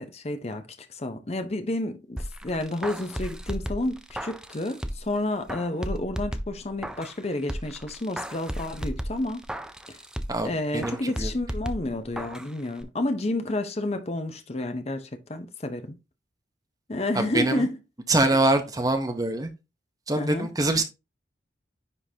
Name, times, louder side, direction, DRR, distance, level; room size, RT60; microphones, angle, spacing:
voice 1, 0.0-9.4 9.9-10.0 10.4-16.0 16.9-17.8 20.2-20.5, left 1 dB, 35° left, 0.7 m, -30 dB
sound 1, 2.2-5.2 5.5-7.2 7.5-10.5 10.8-12.5 12.8-12.9, equal, 5° right, 0.4 m, -34 dB
voice 2, 10.3-11.3 17.1-17.7 18.1-19.5 20.1-20.8, right 2 dB, 20° right, 0.8 m, -24 dB
9.8 x 3.8 x 2.8 m
head